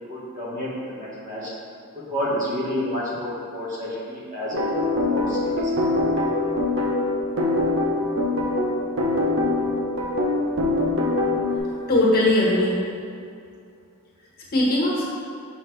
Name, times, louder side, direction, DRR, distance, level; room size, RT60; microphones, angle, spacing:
voice 1, 0.0-1.5 1.9-4.6 5.1-5.7, left 1 dB, 35° right, -7 dB, 1.5 m, -30 dB
sound 1, 4.5-11.6, left 2 dB, 60° right, 0.9 m, -23 dB
voice 2, 11.5-12.8 14.5-15.1, left 1 dB, 45° left, -5 dB, 1.3 m, -20 dB
6.4 x 5.6 x 3.3 m, 2.4 s
head